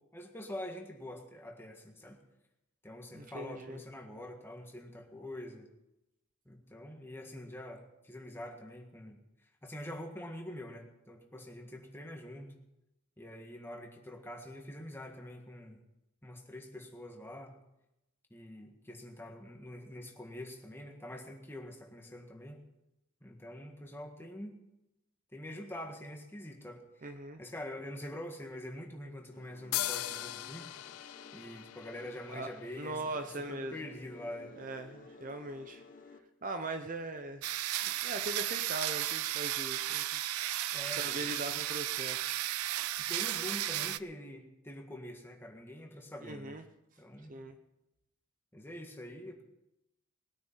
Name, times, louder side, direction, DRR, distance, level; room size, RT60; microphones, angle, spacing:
voice 1, 0.1-2.2 2.8-5.7 6.4-9.2 9.6-12.5 13.2-15.8 16.2-17.5 18.3-22.6 23.2-24.6 25.3-26.8 27.4-34.5 40.7-41.4 43.1-46.6 47.0-47.3 48.5-49.4, left 1 dB, 10° left, 2 dB, 1.7 m, -45 dB
voice 2, 3.1-3.8 27.0-27.4 32.3-32.5 32.8-33.8 34.6-35.8 36.4-37.4 37.8-40.2 40.9-42.4 46.2-46.6 47.3-47.6, right 2 dB, 35° right, 7 dB, 0.8 m, -40 dB
sound 1, 29.3-36.2, left 3 dB, 40° left, 1.0 m, -55 dB
sound 2, 29.7-33.3, left 14 dB, 75° left, 0.4 m, -39 dB
sound 3, 37.4-44.0, right 13 dB, 80° right, 0.5 m, -34 dB
20.0 x 9.3 x 5.7 m, 0.90 s
head